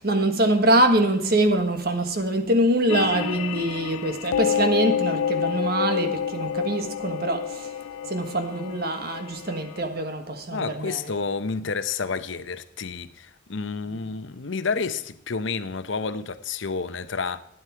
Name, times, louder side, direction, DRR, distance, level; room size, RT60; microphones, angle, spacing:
voice 1, 0.0-7.7 8.1-11.0, right 1 dB, 50° right, 1.4 m, -24 dB
sound 1, 2.9-9.8, left 8 dB, 90° left, 0.3 m, -29 dB
voice 2, 10.5-17.4, left 4 dB, 70° left, 0.8 m, -30 dB
12.0 x 9.7 x 4.6 m
head